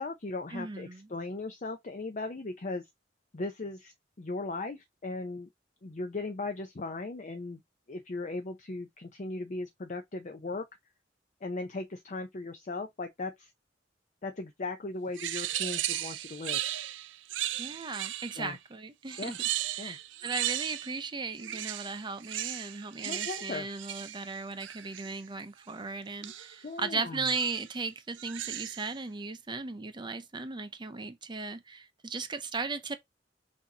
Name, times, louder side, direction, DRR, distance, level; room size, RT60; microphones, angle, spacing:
voice 1, 0.0-2.9 3.3-5.5 5.8-7.6 7.9-10.6 11.4-13.5 14.2-16.6 18.4-18.6 19.2-19.4 19.8-20.0 23.0-23.7 26.6-27.3, left 3 dB, 45° left, 0.6 m, -37 dB
voice 2, 0.5-1.1 17.6-19.3 19.8-33.0, right 4 dB, 25° right, 0.6 m, -37 dB
sound 1, 15.2-18.5 19.1-21.1 21.4-25.2 26.2-26.6 27.2-27.7 28.1-28.9, right 13 dB, 90° right, 0.4 m, -36 dB
6.1 x 2.8 x 2.8 m
head